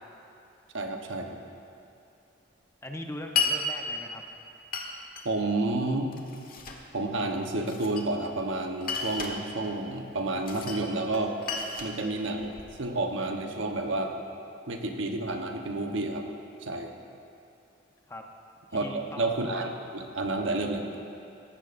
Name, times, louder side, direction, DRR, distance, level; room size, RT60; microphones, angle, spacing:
voice 1, 0.7-1.4 5.2-6.1 6.9-11.4 11.8-14.1 14.7-16.3 16.6-16.9 18.7-18.8 19.2-20.9, right 2 dB, 85° right, 3 dB, 1.1 m, -30 dB
voice 2, 2.8-4.2 18.1-18.2 18.7-19.2, left 1 dB, 15° left, 2 dB, 0.8 m, -40 dB
Glass, 3.4-3.6 4.7-5.3 6.1-6.8 7.7-8.4 8.8-9.4 10.4-10.9 11.1-12.8, left 4 dB, 50° left, 1.2 m, -32 dB
17.5 x 15.0 x 2.6 m, 2.6 s
head